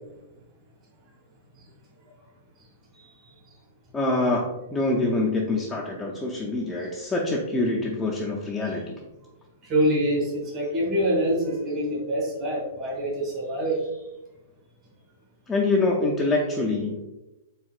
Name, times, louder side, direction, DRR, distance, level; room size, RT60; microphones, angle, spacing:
voice 1, 2.9-3.3 6.8-6.9 9.6-13.9, equal, 25° right, -3 dB, 1.4 m, -26 dB
voice 2, 3.9-8.9 15.5-17.0, left 2 dB, 10° left, -3 dB, 0.4 m, -25 dB
4.4 x 3.7 x 2.4 m, 0.99 s
hypercardioid pair, 145°, 0 cm